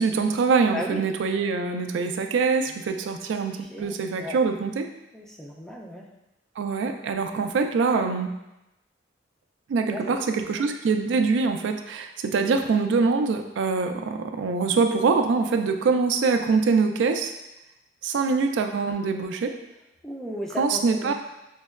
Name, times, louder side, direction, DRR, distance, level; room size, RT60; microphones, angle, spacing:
voice 1, 0.0-4.9 6.6-8.3 9.7-17.3 18.0-19.5 20.6-21.1, right 4 dB, 80° right, 6 dB, 0.3 m, -24 dB
voice 2, 0.7-1.0 3.6-4.4 5.1-6.1 9.9-10.0 10.3-10.4 20.0-21.1, left 1 dB, 5° left, -1 dB, 0.3 m, -35 dB
5.2 x 2.1 x 2.3 m, 0.93 s
head